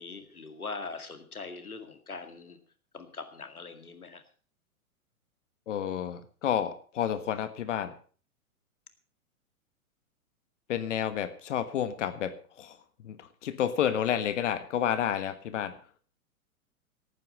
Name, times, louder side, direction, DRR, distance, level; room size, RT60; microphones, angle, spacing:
voice 1, 0.0-2.6 2.9-4.2, left 4 dB, 85° left, 9 dB, 2.1 m, -41 dB
voice 2, 5.7-7.9 10.7-12.8 13.0-15.8, left 9 dB, 55° left, 12 dB, 1.5 m, -30 dB
18.5 x 9.2 x 5.3 m, 0.41 s
figure-of-eight pair, 110°, 43 cm